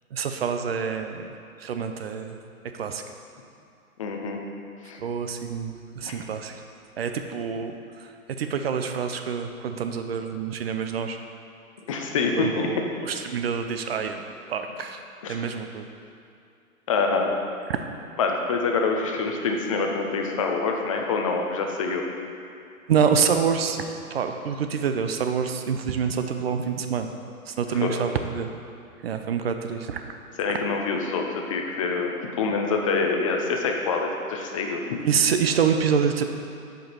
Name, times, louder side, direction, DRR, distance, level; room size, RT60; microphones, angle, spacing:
voice 1, 0.1-1.3 1.6-2.4 2.7-3.0 5.0-6.6 7.0-8.1 8.4-11.2 12.4-14.2 14.5-15.9 17.7-17.8 22.9-23.8 24.1-27.1 27.5-28.5 29.0-30.1 35.0-36.2, right 6 dB, 45° right, 6 dB, 0.5 m, -26 dB
voice 2, 4.0-4.4 4.8-5.0 6.1-6.2 11.9-12.7 15.2-15.4 16.9-17.3 18.2-22.0 27.8-28.0 30.4-35.0, left 4 dB, 25° left, 2 dB, 0.5 m, -26 dB
7.3 x 5.2 x 4.4 m, 2.5 s
figure-of-eight pair, 125°, 44 cm